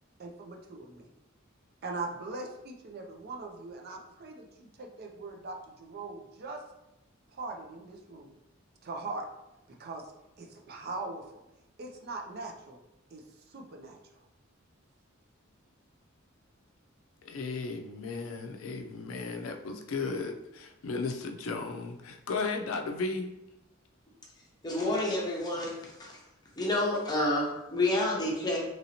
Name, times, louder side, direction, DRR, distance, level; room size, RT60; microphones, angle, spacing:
voice 1, 0.2-1.1 1.8-6.6 7.3-8.3 8.8-9.2 9.8-10.0 10.4-11.2 11.8-12.8 13.1-14.0, right 3 dB, 50° right, 2 dB, 0.5 m, -41 dB
voice 2, 17.3-23.3, left 4 dB, 80° left, 4 dB, 0.4 m, -35 dB
voice 3, 24.6-26.2 26.6-28.6, left 1 dB, 20° left, -3 dB, 0.7 m, -29 dB
3.0 x 2.7 x 2.8 m, 0.90 s
head